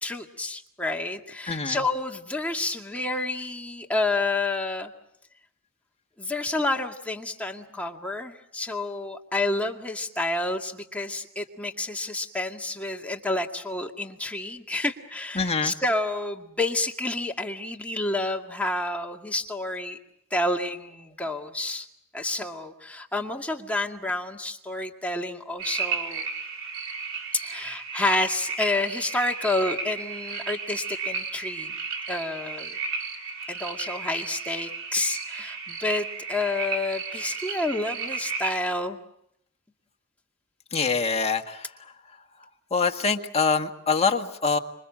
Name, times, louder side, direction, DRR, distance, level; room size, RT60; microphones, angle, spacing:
voice 1, 0.0-4.9 6.2-20.0 20.3-21.9 22.1-26.3 27.3-31.7 32.1-32.8 33.5-39.0, left 2 dB, 5° left, 1 dB, 2.1 m, -29 dB
voice 2, 1.5-1.8 15.4-15.7 40.7-41.6 42.7-44.6, left 5 dB, 30° left, 3 dB, 1.7 m, -24 dB
sound 1, 25.6-38.6, right 5 dB, 65° right, 4.7 m, -34 dB
26.5 x 24.0 x 7.5 m, 0.74 s
head